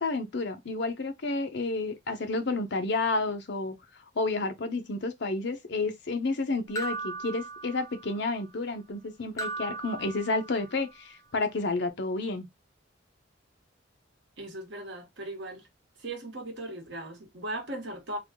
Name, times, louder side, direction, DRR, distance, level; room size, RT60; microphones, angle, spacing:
voice 1, 0.0-3.7 4.2-12.5, left 3 dB, 60° left, 0.7 m, -30 dB
sound 1, 6.8-8.2 9.4-10.8, right 3 dB, 15° left, 0.7 m, -37 dB
voice 2, 14.4-15.7 16.0-18.2, right 1 dB, 60° right, 1.2 m, -38 dB
3.5 x 2.3 x 3.6 m
head